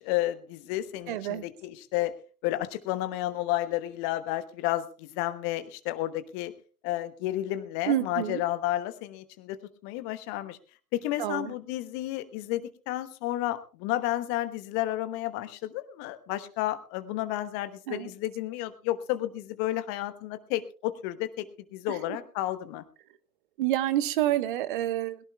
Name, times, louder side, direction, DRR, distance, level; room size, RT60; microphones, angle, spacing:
voice 1, 0.0-2.1 2.4-6.5 6.8-10.6 10.9-21.5 21.7-22.8, left 14 dB, 25° left, 12 dB, 1.1 m, -31 dB
voice 2, 1.1-1.4 7.9-8.4 11.2-11.5 17.9-18.1 23.6-25.2, right 13 dB, 35° right, 13 dB, 1.2 m, -28 dB
21.5 x 16.5 x 2.3 m, 0.38 s
figure-of-eight pair, 120°, 45 cm